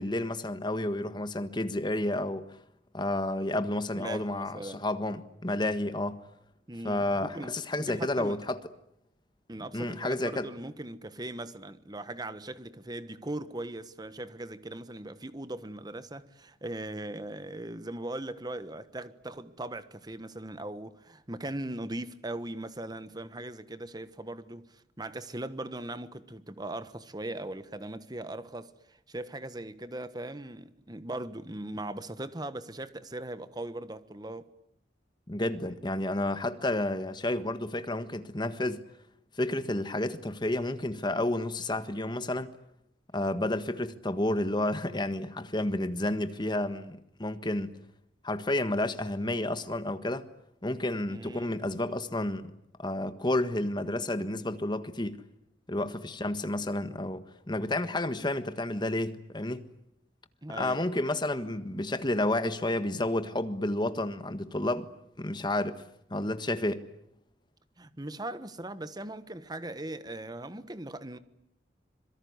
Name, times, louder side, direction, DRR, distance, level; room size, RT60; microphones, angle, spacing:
voice 1, 0.0-2.6 2.9-6.2 6.8-8.6 9.7-10.5 35.3-38.8 39.4-42.5 43.1-47.7 48.2-50.2 50.6-52.5 52.8-55.2 55.7-59.7 60.5-64.9 65.2-65.8 66.1-66.8, left 1 dB, 25° left, 1.5 m, -31 dB
voice 2, 3.9-4.8 6.7-7.5 7.8-8.4 9.5-34.5 51.1-51.5 60.4-60.9 67.8-71.2, right 1 dB, 20° right, 1.3 m, -39 dB
26.0 x 23.0 x 9.6 m
head